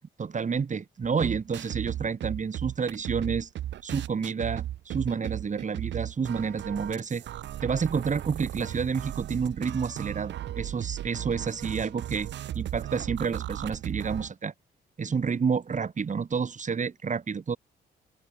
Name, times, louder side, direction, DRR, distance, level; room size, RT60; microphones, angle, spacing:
voice 1, 0.2-3.5 3.8-7.2 7.6-12.3 12.5-14.5 15.0-17.6, right 5 dB, 40° right, 2.7 m, -29 dB
sound 1, 1.0-14.3, right 12 dB, 80° right, 2.9 m, -36 dB
open air
cardioid pair, 75°, 19 cm